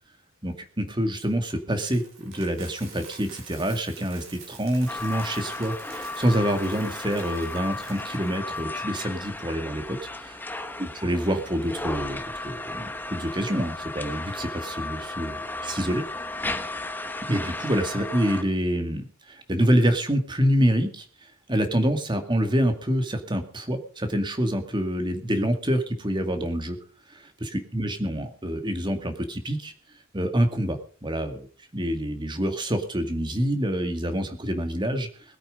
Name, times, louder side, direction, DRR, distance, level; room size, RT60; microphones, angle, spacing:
voice 1, 0.4-10.4 10.8-16.0 17.3-21.1 21.5-26.8 27.1-29.7 30.1-31.5 31.7-35.1, equal, 20° right, 6 dB, 2.2 m, -26 dB
Coin (dropping), 1.2-8.6, right 5 dB, 65° right, 6.2 m, -47 dB
sound 1, 4.9-18.4, left 2 dB, 10° left, 1.1 m, -35 dB
21.0 x 8.9 x 5.3 m, 0.42 s
head